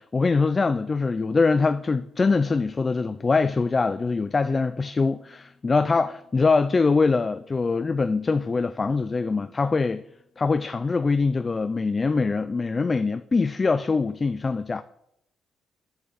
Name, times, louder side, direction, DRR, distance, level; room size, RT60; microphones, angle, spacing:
voice 1, 0.0-10.0 10.4-14.8, left 4 dB, 30° left, 0.3 m, -23 dB
6.8 x 5.9 x 6.7 m
cardioid pair, 90°, 0 cm